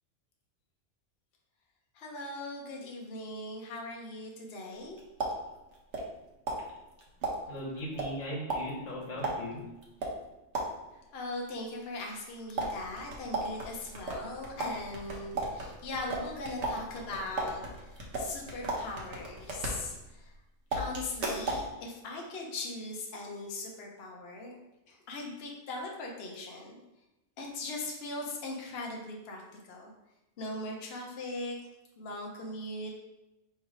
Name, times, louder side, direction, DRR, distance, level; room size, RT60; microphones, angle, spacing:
voice 1, 1.9-5.0 10.9-20.3 20.8-24.6 24.9-26.8 27.4-29.4 29.7-29.9 30.4-31.6 32.0-32.9, left 2 dB, 60° left, 0 dB, 1.0 m, -40 dB
sound 1, 4.7-6.2 6.5-11.0 12.6-20.4 20.7-21.7, right 2 dB, 70° right, 1.2 m, -36 dB
voice 2, 7.5-9.6, equal, 80° left, -3 dB, 1.4 m, -38 dB
3.4 x 3.2 x 4.8 m, 0.95 s
omnidirectional pair, 1.3 m